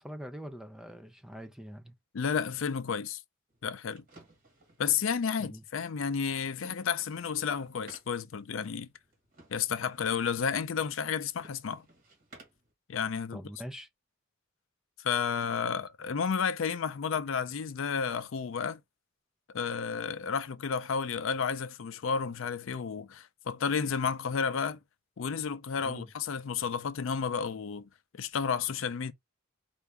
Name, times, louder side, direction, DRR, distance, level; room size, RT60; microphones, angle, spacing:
voice 1, 0.0-1.9 5.4-5.6 13.3-13.9 25.8-26.1, equal, 5° right, 0.4 m, -43 dB
voice 2, 2.1-3.2 3.6-4.0 4.8-8.9 9.5-11.8 12.9-13.4 15.0-18.8 19.5-24.8 25.2-27.9 28.2-29.1, left 6 dB, 65° left, 0.4 m, -31 dB
sound 1, 3.5-12.7, right 2 dB, 45° right, 1.9 m, -59 dB
4.6 x 2.6 x 3.4 m
head